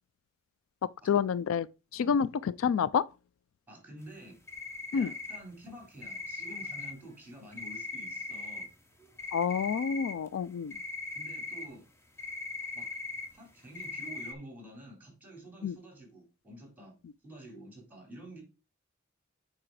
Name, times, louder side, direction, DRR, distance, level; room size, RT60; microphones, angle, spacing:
voice 1, 1.1-1.7 1.9-3.0 4.9-5.1 9.3-10.7 15.6-15.8, left 7 dB, 70° left, 0.3 m, -28 dB
voice 2, 3.7-4.4 4.9-8.7 11.1-11.8 12.7-12.9 13.3-17.0 17.2-18.4, right 1 dB, 10° right, 3.6 m, -49 dB
sound 1, 4.5-5.7 6.0-6.9 7.5-8.6 9.0-10.4 10.7-11.6 12.2-13.4 13.7-14.3, left 3 dB, 15° left, 1.0 m, -39 dB
7.6 x 4.9 x 4.7 m
head